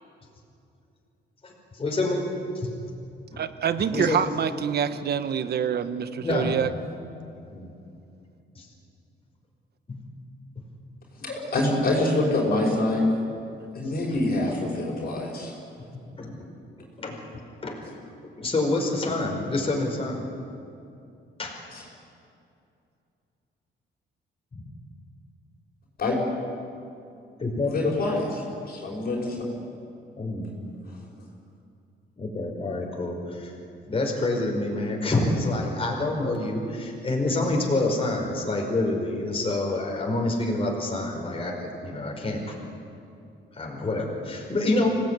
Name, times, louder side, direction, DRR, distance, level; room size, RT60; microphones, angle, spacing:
voice 1, 1.4-2.3 2.5-2.7 3.3-3.4 3.9-4.2 6.2-6.8 7.5-7.7 8.5-8.7 9.9-10.0 10.6-10.7 13.8-13.9 15.9-16.5 16.8-17.2 17.6-17.9 18.4-20.2 21.4-21.5 24.5-24.6 27.4-27.7 30.2-30.4 32.2-33.5 33.8-42.6 43.5-44.9, left 2 dB, 30° left, 0 dB, 5.1 m, -27 dB
voice 2, 3.4-6.7, right 8 dB, 55° right, 11 dB, 1.3 m, -26 dB
voice 3, 11.2-13.1 13.7-15.5 21.7-21.8 26.0-26.2 27.6-29.4, left 2 dB, 50° left, -2 dB, 5.8 m, -25 dB
26.0 x 18.5 x 9.6 m, 2.6 s
cardioid pair, 130°, 20 cm